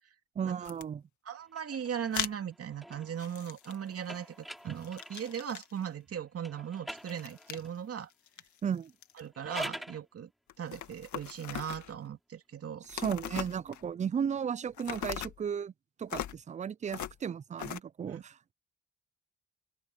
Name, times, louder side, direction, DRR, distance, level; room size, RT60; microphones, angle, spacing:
voice 1, 0.4-1.0 8.6-8.9 12.9-15.7 16.0-18.5, right 7 dB, 25° right, 0.4 m, -34 dB
sound 1, 0.6-0.8 2.1-2.3 3.2-4.2 4.5-5.8 6.9-7.7 8.1-9.2 10.5-12.0 12.8-13.9 14.7-15.4 16.1-16.4 16.9-17.2 17.6-17.8, left 11 dB, 70° left, 2.0 m, -40 dB
voice 2, 1.2-8.1 9.2-10.3 10.6-12.8 18.1-18.2, right 8 dB, 50° right, 2.5 m, -38 dB
sound 2, 1.5-5.5 6.4-7.8 9.2-10.0, equal, ahead, 6.3 m, -45 dB
cardioid pair, 90°, 30 cm